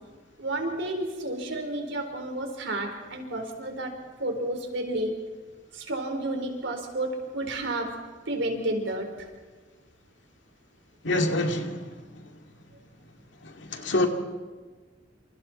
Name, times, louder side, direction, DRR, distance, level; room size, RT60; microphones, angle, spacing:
voice 1, 0.4-3.9 4.2-5.2 5.7-8.0 8.3-9.3, right 1 dB, 65° right, 3 dB, 4.2 m, -31 dB
voice 2, 11.0-11.8 13.6-14.1, left 2 dB, 65° left, 4 dB, 2.4 m, -25 dB
28.0 x 27.0 x 4.4 m, 1.4 s
head